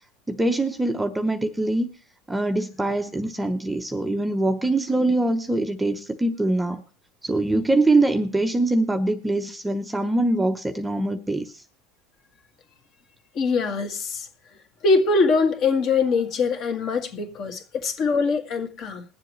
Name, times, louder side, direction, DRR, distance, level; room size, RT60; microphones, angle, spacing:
voice 1, 0.3-1.9 2.3-6.8 7.2-11.5, right 2 dB, 5° right, 0.7 m, -23 dB
voice 2, 13.4-14.3 14.8-19.0, left 4 dB, 40° left, 1.8 m, -23 dB
21.0 x 7.4 x 3.1 m
supercardioid pair, 140°, 0 cm